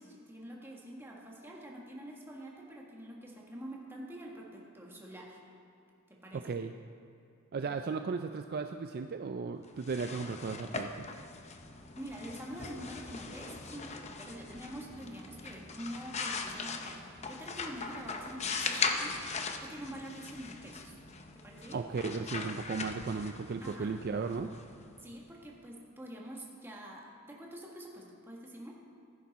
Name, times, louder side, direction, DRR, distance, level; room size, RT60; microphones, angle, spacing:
voice 1, 0.0-5.4 6.1-6.5 7.6-7.7 11.9-20.9 21.3-21.8 23.6-23.9 25.0-28.8, equal, 10° right, -2 dB, 1.7 m, -46 dB
voice 2, 6.3-6.7 7.5-11.1 21.7-24.5, right 4 dB, 45° right, 7 dB, 0.4 m, -36 dB
sound 1, 9.7-25.4, left 4 dB, 30° left, 0.7 m, -40 dB
14.5 x 10.5 x 4.2 m, 2.7 s
head